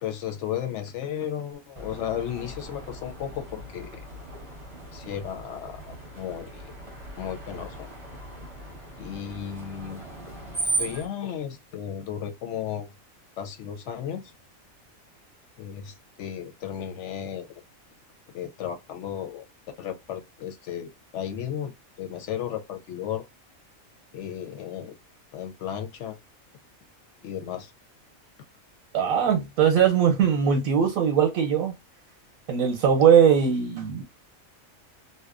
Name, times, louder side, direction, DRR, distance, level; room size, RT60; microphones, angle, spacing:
voice 1, 0.0-4.0 4.9-6.7 7.2-7.9 9.0-10.0 10.8-12.9 13.4-14.3 15.6-17.5 18.3-19.5 19.8-21.7 22.0-23.2 24.1-25.0 25.3-26.2 27.2-27.7, left 9 dB, 65° left, 0.8 m, -34 dB
Screech, 1.8-11.1, right 2 dB, 30° right, 0.8 m, -37 dB
voice 2, 28.9-31.7 32.5-34.0, right 8 dB, 90° right, 1.1 m, -20 dB
2.8 x 2.1 x 2.4 m
omnidirectional pair, 1.4 m